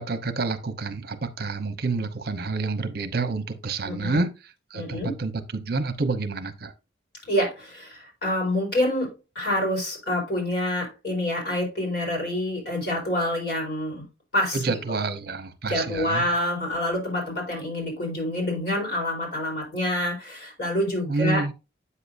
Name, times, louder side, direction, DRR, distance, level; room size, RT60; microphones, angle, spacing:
voice 1, 0.0-4.3 4.7-6.7 14.5-16.3 21.1-21.5, right 3 dB, 55° right, 0.8 m, -28 dB
voice 2, 3.8-4.2 4.7-5.1 7.3-14.1 14.3-14.6 15.6-21.5, left 1 dB, 60° left, 4.3 m, -27 dB
8.4 x 6.8 x 2.5 m
head